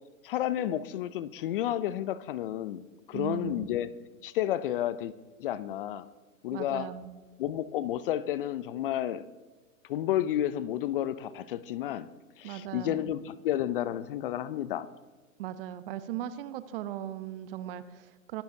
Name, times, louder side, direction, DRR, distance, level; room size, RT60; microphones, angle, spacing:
voice 1, 0.2-3.9 4.2-5.1 5.4-6.1 6.4-6.9 7.4-9.2 9.9-12.1 12.4-14.9, left 12 dB, 40° left, 16 dB, 0.6 m, -31 dB
voice 2, 3.1-3.7 6.5-7.2 12.4-13.1 15.4-18.4, right 12 dB, 40° right, 13 dB, 0.8 m, -38 dB
24.0 x 11.5 x 2.7 m, 1.3 s
hypercardioid pair, 125°, 42 cm